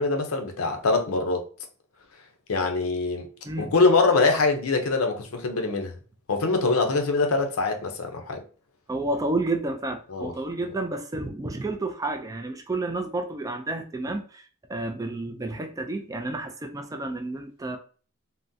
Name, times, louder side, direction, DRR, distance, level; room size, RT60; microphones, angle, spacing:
voice 1, 0.0-1.4 2.5-3.3 3.6-6.0 6.3-8.4 10.1-10.3, left 3 dB, 80° left, 0.6 m, -23 dB
voice 2, 8.9-14.4 14.7-17.8, right 2 dB, 15° right, 0.3 m, -30 dB
3.7 x 2.0 x 2.6 m
head